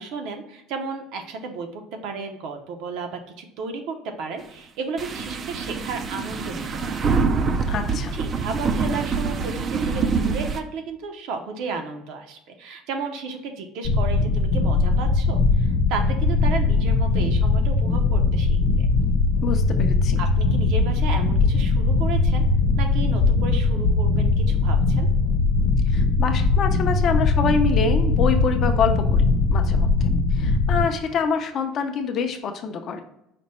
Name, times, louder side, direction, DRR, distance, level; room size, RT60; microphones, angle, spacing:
voice 1, 0.0-7.0 8.1-18.9 20.2-22.4 22.8-25.1, right 4 dB, 60° right, 5 dB, 0.7 m, -33 dB
sound 1, 5.0-10.6, right 4 dB, 25° right, 0.3 m, -25 dB
voice 2, 7.7-8.1 19.4-20.2 25.9-33.0, left 5 dB, 40° left, 6 dB, 0.5 m, -26 dB
sound 2, 13.8-30.8, left 3 dB, 70° left, 0.9 m, -20 dB
5.1 x 2.1 x 4.1 m, 0.83 s
cardioid pair, 160°, 0 cm